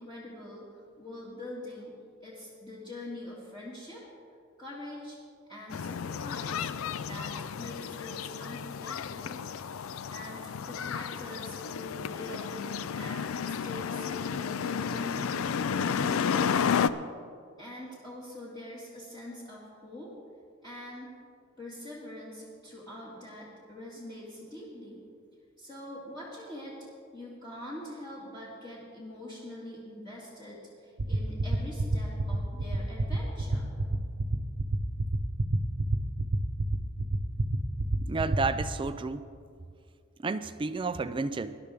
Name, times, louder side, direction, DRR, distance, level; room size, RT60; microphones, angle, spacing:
voice 1, 0.0-4.1 4.6-5.2 5.5-6.7 7.0-9.4 10.1-16.6 17.6-20.1 20.6-21.2 21.6-25.0 25.6-26.8 27.1-33.7, left 1 dB, 20° left, -7 dB, 2.0 m, -44 dB
sound 1, 5.7-16.9, left 7 dB, 75° left, 0.4 m, -32 dB
sound 2, 31.0-38.6, right 3 dB, 70° right, 0.8 m, -27 dB
voice 2, 38.0-39.3 40.2-41.6, right 3 dB, 25° right, 12 dB, 0.4 m, -31 dB
19.0 x 11.5 x 3.5 m, 2.2 s
head